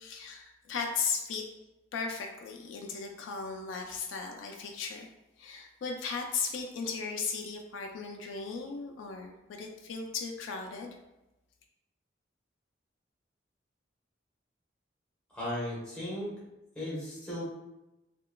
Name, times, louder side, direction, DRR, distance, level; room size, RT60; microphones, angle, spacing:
voice 1, 0.0-1.5 1.9-5.1 5.4-11.0, left 5 dB, 85° left, 2 dB, 0.3 m, -36 dB
voice 2, 15.3-16.3 16.7-17.4, left 1 dB, 5° left, -8 dB, 0.9 m, -36 dB
2.9 x 2.2 x 2.2 m, 0.96 s
head